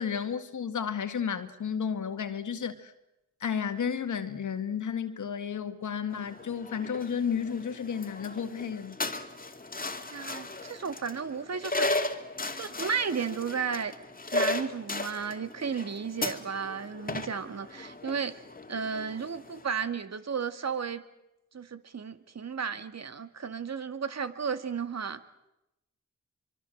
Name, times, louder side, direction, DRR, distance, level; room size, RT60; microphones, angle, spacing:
voice 1, 0.0-2.9 3.4-9.0, left 7 dB, 70° left, 2.1 m, -32 dB
sound 1, 6.1-19.6, left 2 dB, 30° left, 2.4 m, -36 dB
voice 2, 10.1-11.9 12.6-13.9 14.3-18.3 18.7-21.0 21.5-25.2, right 6 dB, 60° right, 2.0 m, -33 dB
24.5 x 23.5 x 7.8 m
cardioid pair, 50°, 31 cm